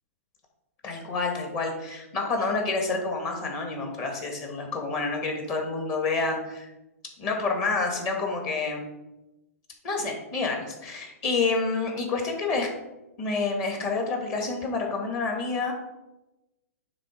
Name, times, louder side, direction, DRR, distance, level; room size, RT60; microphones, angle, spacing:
voice 1, 0.8-6.7 7.2-8.8 9.8-12.7 13.2-15.7, left 3 dB, 40° left, 1 dB, 1.7 m, -28 dB
9.6 x 3.4 x 5.0 m, 0.98 s
hypercardioid pair, 125°, 8 cm